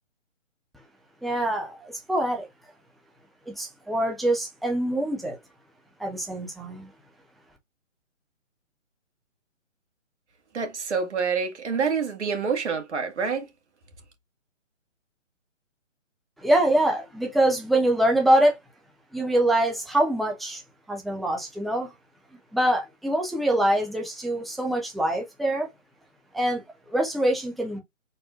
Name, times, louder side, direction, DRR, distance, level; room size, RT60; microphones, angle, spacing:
voice 1, 1.2-2.5 3.5-5.4 6.0-6.9 16.4-18.6 19.1-20.6 20.9-21.9 22.5-25.7 26.3-27.8, right 1 dB, ahead, 0.4 m, -24 dB
voice 2, 10.5-13.5, right 5 dB, 60° right, 1.8 m, -27 dB
4.3 x 4.1 x 2.3 m
hypercardioid pair, 170°, 38 cm